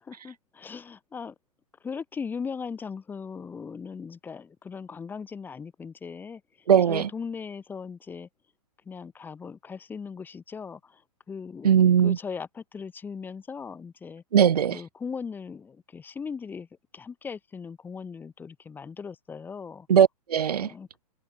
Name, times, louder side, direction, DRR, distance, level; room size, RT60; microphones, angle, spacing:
voice 1, 0.0-1.3 1.8-6.4 6.9-8.3 8.9-11.0 11.3-11.8 12.0-14.2 14.7-16.7 16.9-19.9 20.6-20.9, left 5 dB, 10° left, 7.3 m, -38 dB
voice 2, 6.7-7.1 11.6-12.2 14.3-14.8 19.9-20.7, right 8 dB, 80° right, 2.5 m, -19 dB
open air
hypercardioid pair, 160°, 20 cm